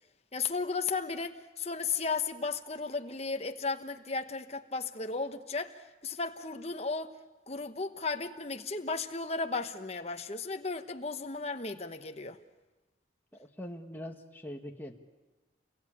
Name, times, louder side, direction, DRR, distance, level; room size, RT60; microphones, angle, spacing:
voice 1, 0.3-7.1 7.5-12.4, left 4 dB, 35° left, 1.2 m, -35 dB
voice 2, 13.4-15.0, left 1 dB, 10° left, 1.7 m, -42 dB
28.5 x 22.0 x 8.7 m
head